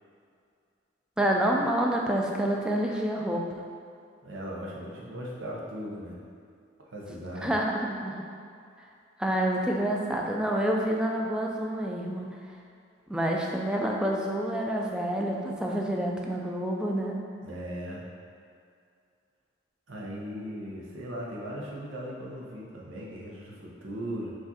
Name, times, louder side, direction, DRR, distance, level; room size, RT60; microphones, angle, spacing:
voice 1, 1.2-3.4 7.4-8.2 9.2-12.2 13.1-17.2, right 1 dB, 5° right, -1 dB, 0.4 m, -28 dB
voice 2, 4.2-6.2 6.9-7.6 17.4-18.0 19.9-24.3, equal, 90° right, -3 dB, 0.8 m, -38 dB
4.8 x 2.5 x 4.1 m, 2.4 s
head